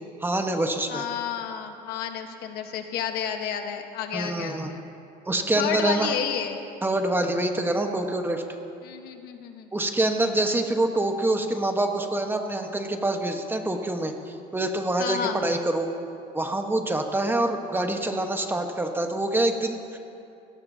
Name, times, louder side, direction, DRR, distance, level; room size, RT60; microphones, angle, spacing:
voice 1, 0.2-1.0 4.1-4.7 5.3-6.1 6.8-8.4 9.7-15.9 16.3-20.0, right 1 dB, 15° right, 4 dB, 1.1 m, -26 dB
voice 2, 0.9-4.8 5.6-6.6 8.8-9.7 15.0-15.4, left 8 dB, 75° left, 5 dB, 1.2 m, -31 dB
20.5 x 17.5 x 2.8 m, 2.6 s
cardioid pair, 115°, 17 cm